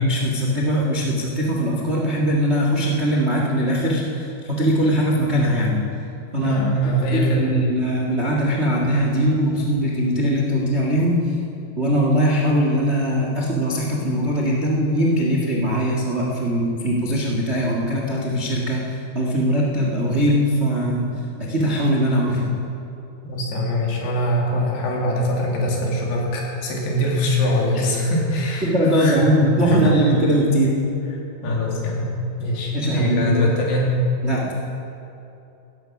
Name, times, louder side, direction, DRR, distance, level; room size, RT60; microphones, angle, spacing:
voice 1, 0.0-5.8 6.3-6.6 7.1-11.4 11.8-21.1 21.5-22.5 27.7-27.8 28.6-30.8 32.7-33.4 34.2-34.5, equal, 65° right, -2 dB, 0.6 m, -21 dB
voice 2, 6.4-7.5 23.2-28.7 28.9-29.3 29.6-29.9 31.4-32.1 32.4-33.9, equal, 85° left, -2 dB, 4.7 m, -22 dB
17.0 x 14.0 x 6.0 m, 2.8 s
omnidirectional pair, 4.6 m